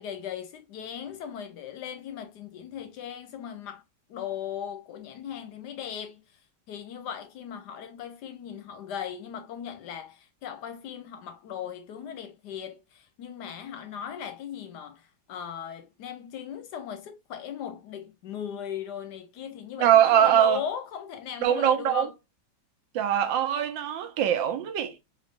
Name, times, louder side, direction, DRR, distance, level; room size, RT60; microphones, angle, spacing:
voice 1, 0.0-3.8 4.1-6.4 6.7-22.1, left 9 dB, 75° left, 1.1 m, -38 dB
voice 2, 19.8-20.6 21.4-22.1 22.9-25.0, right 10 dB, 75° right, 1.4 m, -22 dB
4.4 x 2.9 x 2.5 m
omnidirectional pair, 2.1 m